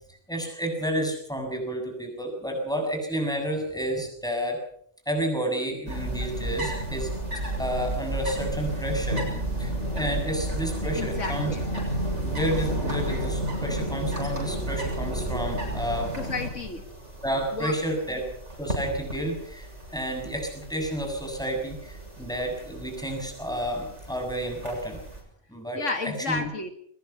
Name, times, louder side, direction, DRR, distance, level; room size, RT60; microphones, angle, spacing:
voice 1, 0.3-4.6 5.1-7.1 7.6-9.2 9.6-11.5 12.2-16.1 17.2-18.2 18.6-19.7 19.9-25.0 25.5-26.5, equal, 5° left, 3 dB, 7.0 m, -30 dB
sound 1, 5.9-25.2, right 1 dB, 60° right, 7.3 m, -32 dB
voice 2, 10.9-11.6 16.2-16.8 17.5-17.7 25.7-26.7, left 4 dB, 65° left, 6 dB, 2.0 m, -31 dB
23.0 x 20.0 x 5.8 m, 0.64 s
omnidirectional pair, 1.4 m